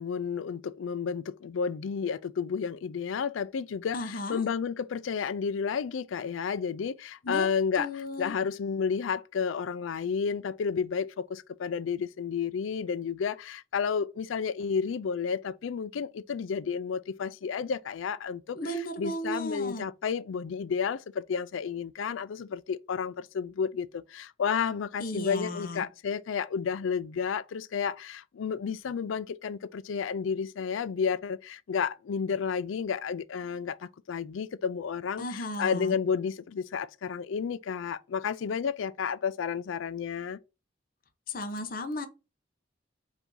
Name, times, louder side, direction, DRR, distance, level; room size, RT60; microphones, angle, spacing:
voice 1, 0.0-40.4, left 6 dB, 85° left, 0.4 m, -31 dB
voice 2, 3.9-4.4 7.2-7.5 7.8-8.3 18.5-19.8 25.0-25.9 35.2-35.9 41.3-42.1, left 1 dB, 45° left, 0.8 m, -34 dB
4.8 x 2.7 x 3.8 m
head